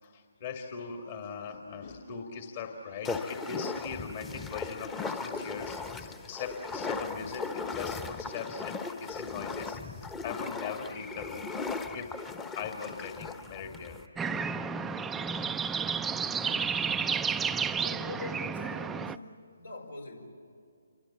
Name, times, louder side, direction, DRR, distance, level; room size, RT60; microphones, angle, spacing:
voice 1, 0.0-11.5 11.9-12.2 12.5-14.0, left 6 dB, 40° left, 3 dB, 2.3 m, -40 dB
sound 1, 3.0-14.1, left 4 dB, 15° left, 1.2 m, -37 dB
sound 2, 14.2-19.2, right 6 dB, 10° right, 0.6 m, -31 dB
voice 2, 16.4-16.8 17.8-19.3 19.6-20.3, left 2 dB, 80° left, 4 dB, 5.6 m, -43 dB
28.5 x 24.5 x 7.4 m, 2.4 s
figure-of-eight pair, 140°, 0 cm